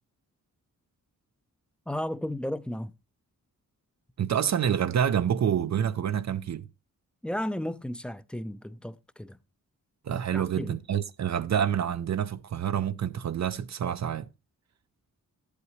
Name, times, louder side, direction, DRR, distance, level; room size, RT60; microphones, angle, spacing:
voice 1, 1.9-2.9 7.2-9.4 10.3-10.7, left 1 dB, 5° left, 0.5 m, -34 dB
voice 2, 4.2-6.7 10.1-14.3, right 9 dB, 55° right, 0.5 m, -27 dB
12.0 x 8.3 x 3.1 m
cardioid pair, 70°, 34 cm